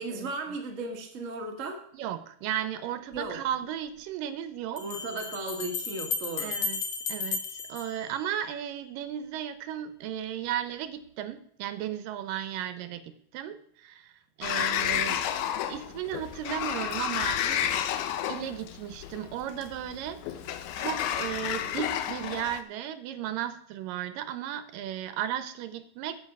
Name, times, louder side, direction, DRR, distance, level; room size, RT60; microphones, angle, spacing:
voice 1, 0.0-1.8 3.1-3.4 4.8-6.5, right 2 dB, 35° right, 2 dB, 1.3 m, -35 dB
voice 2, 1.9-4.8 6.4-6.8 7.1-14.1 14.4-15.2 15.7-17.7 18.3-20.2 20.8-26.2, right 10 dB, 90° right, 11 dB, 2.5 m, -35 dB
Bell, 3.1-3.2 4.8-8.7, left 5 dB, 60° left, 1.7 m, -34 dB
Sliding door, 14.4-22.6, left 10 dB, 80° left, 2.1 m, -31 dB
9.0 x 8.0 x 6.0 m, 0.64 s
omnidirectional pair, 3.8 m